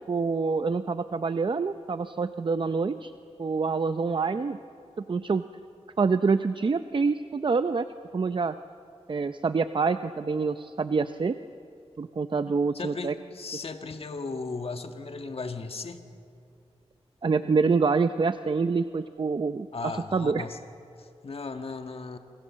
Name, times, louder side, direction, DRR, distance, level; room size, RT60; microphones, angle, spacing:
voice 1, 0.1-3.1 3.4-4.6 5.0-5.4 6.0-7.9 8.1-8.5 9.1-11.4 12.0-13.1 17.2-20.5, right 4 dB, 50° right, 11 dB, 0.7 m, -26 dB
voice 2, 12.7-16.0 19.7-20.6 21.0-22.2, left 4 dB, 60° left, 6 dB, 1.8 m, -36 dB
27.5 x 25.5 x 7.5 m, 2.6 s
wide cardioid pair, 95°, 11 cm